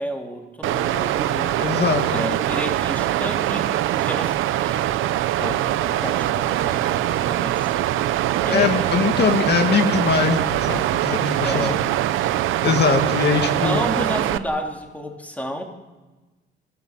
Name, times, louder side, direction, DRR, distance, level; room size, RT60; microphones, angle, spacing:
voice 1, 0.0-1.6 2.1-4.4 4.6-7.7 8.4-9.0 11.4-11.8 13.6-15.6, equal, 5° left, 2 dB, 3.3 m, -31 dB
Water, 0.6-14.4, right 13 dB, 90° right, 0.8 m, -23 dB
voice 2, 1.6-2.3 8.5-11.7 12.6-13.8, left 5 dB, 55° left, 5 dB, 2.0 m, -21 dB
29.5 x 14.5 x 7.5 m, 1.2 s
cardioid pair, 90°, 20 cm